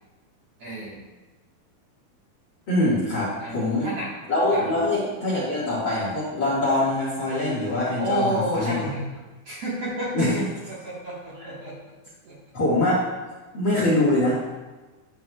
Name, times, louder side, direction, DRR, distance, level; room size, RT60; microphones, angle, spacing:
voice 1, 0.6-1.0 3.4-4.1 4.5-4.7 8.0-9.1 9.4-10.4 10.7-11.8 12.2-12.4, right 1 dB, 55° right, -7 dB, 2.1 m, -30 dB
voice 2, 2.7-3.9 4.3-8.8 10.1-10.3 12.5-13.1 13.5-14.4, left 1 dB, 40° left, -7 dB, 2.0 m, -23 dB
11.0 x 8.4 x 2.3 m, 1.2 s
omnidirectional pair, 4.3 m